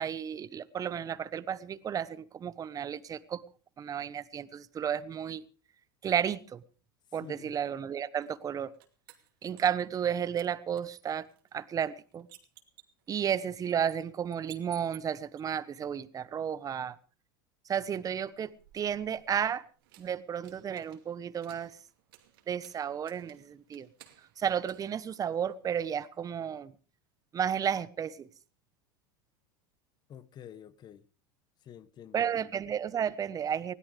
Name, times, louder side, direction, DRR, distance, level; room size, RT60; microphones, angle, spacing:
voice 1, 0.0-3.4 3.8-5.4 6.0-6.6 7.1-8.7 9.4-11.3 11.5-12.3 13.1-17.0 17.7-19.6 20.0-21.8 22.5-23.9 24.4-26.7 27.3-28.3 32.1-33.7, right 8 dB, 30° right, 1.1 m, -32 dB
voice 2, 7.2-7.5 30.1-31.1 31.6-32.5, left 9 dB, 35° left, 1.2 m, -49 dB
sound 1, 8.2-10.1 10.4-15.4 18.2-25.7, right 14 dB, 75° right, 2.6 m, -58 dB
20.0 x 17.0 x 3.4 m
hypercardioid pair, 100°, 12 cm